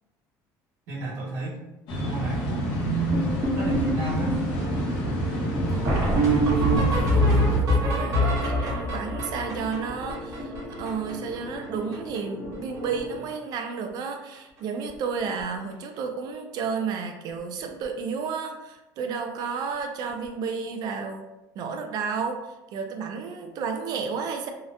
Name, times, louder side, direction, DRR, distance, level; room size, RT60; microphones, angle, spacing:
voice 1, 0.9-1.6 1.9-3.2 3.6-4.5, right 3 dB, 85° right, -7 dB, 1.1 m, -30 dB
sound 1, 1.9-7.6, right 1 dB, 75° left, 0.8 m, -27 dB
sound 2, 3.1-11.3 11.6-11.7 11.9-12.2 12.4-13.0 13.3-13.5 14.3-14.4 14.9-15.0 15.2-15.4 17.7-17.8 20.1-20.2, equal, 45° right, 0.8 m, -26 dB
sound 3, 4.6-13.3, equal, 40° left, 0.8 m, -39 dB
voice 2, 5.5-6.2 6.6-21.2 21.6-22.4 22.7-24.5, right 5 dB, 60° right, 4 dB, 0.3 m, -32 dB
2.8 x 2.0 x 2.5 m, 0.97 s
cardioid pair, 135°, 8 cm